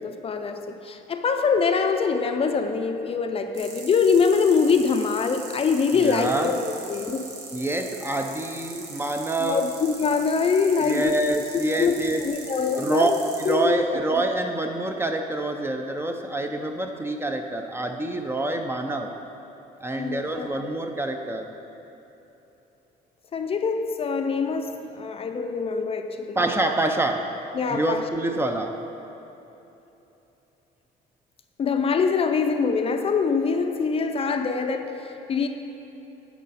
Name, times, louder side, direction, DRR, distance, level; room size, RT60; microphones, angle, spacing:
voice 1, 0.0-7.3 9.4-11.1 11.7-11.9 12.2-13.2 13.4-13.8 19.9-20.6 23.3-26.4 27.5-28.1 31.6-35.5, left 5 dB, 35° left, 6 dB, 0.5 m, -24 dB
sound 1, 3.5-13.5, right 4 dB, 80° right, 1.3 m, -41 dB
voice 2, 5.9-6.5 7.5-9.8 10.8-12.2 12.8-13.1 13.4-19.1 19.8-21.5 26.4-27.3 27.7-28.8, right 2 dB, 15° right, 5 dB, 0.5 m, -26 dB
10.5 x 5.6 x 4.1 m, 3.0 s
cardioid pair, 110°, 17 cm